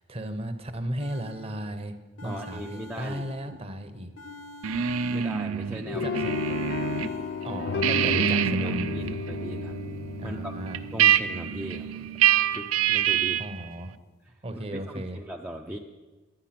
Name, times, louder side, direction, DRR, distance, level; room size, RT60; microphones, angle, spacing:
voice 1, 0.0-2.0 2.2-4.1 5.9-6.2 7.4-8.8 10.2-10.8 13.4-13.9 14.4-15.2, right 1 dB, 25° right, 8 dB, 0.8 m, -35 dB
sound 1, 1.0-1.8 2.2-3.8 4.2-5.7 6.2-7.6, left 2 dB, 75° left, 1.1 m, -46 dB
voice 2, 2.2-3.6 5.1-6.2 8.0-8.3 8.6-9.8 10.2-10.5 10.9-12.1 12.5-13.4 14.2-14.4 14.7-15.8, right 1 dB, 10° right, 0 dB, 0.5 m, -39 dB
sound 2, 4.6-7.1 7.4-13.6, right 9 dB, 70° right, 0.4 m, -26 dB
sound 3, 5.9-12.1, left 4 dB, 50° left, 0.4 m, -33 dB
9.9 x 9.8 x 5.9 m, 1.2 s
head